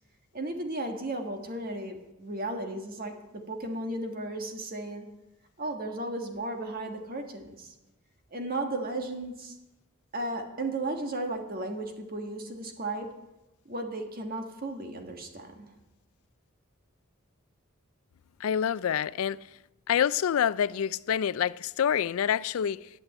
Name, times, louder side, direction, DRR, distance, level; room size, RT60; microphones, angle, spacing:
voice 1, 0.3-5.1 5.6-7.7 8.3-9.5 10.1-13.1 13.6-15.7, right 2 dB, 40° right, 1.7 m, -35 dB
voice 2, 18.4-19.4 19.9-22.9, left 8 dB, 75° left, 0.3 m, -27 dB
12.0 x 8.3 x 8.3 m
head